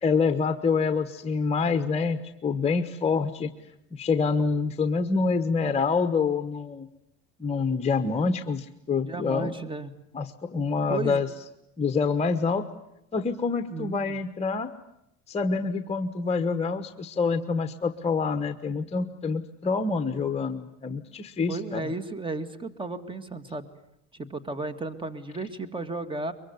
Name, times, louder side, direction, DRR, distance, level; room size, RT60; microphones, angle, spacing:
voice 1, 0.0-3.5 3.9-6.9 7.4-9.5 10.1-11.3 11.8-12.6 13.1-14.7 15.3-21.9, left 4 dB, 20° left, 9 dB, 1.3 m, -26 dB
voice 2, 9.1-9.9 10.6-11.2 13.7-14.2 21.5-23.7 24.1-26.3, right 3 dB, 15° right, 12 dB, 2.2 m, -34 dB
23.5 x 23.5 x 9.7 m, 0.82 s
cardioid pair, 120°, 29 cm